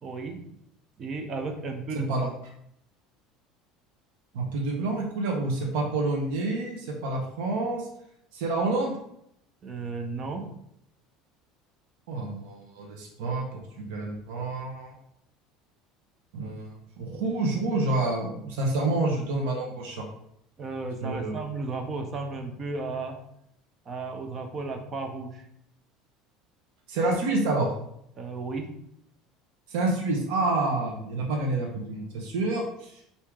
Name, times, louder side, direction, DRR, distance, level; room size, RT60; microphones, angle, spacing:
voice 1, 0.0-0.4 1.0-2.3 9.6-10.5 20.6-23.2 23.9-25.5 28.2-28.7, right 3 dB, 25° right, 5 dB, 0.5 m, -34 dB
voice 2, 4.3-7.9 8.3-8.9 12.1-13.5 13.8-14.9 16.3-16.7 17.0-20.0 21.0-21.3 26.9-27.7 29.7-33.0, right 2 dB, 80° right, 0 dB, 0.8 m, -28 dB
4.6 x 2.7 x 3.5 m, 0.74 s
cardioid pair, 170°, 0 cm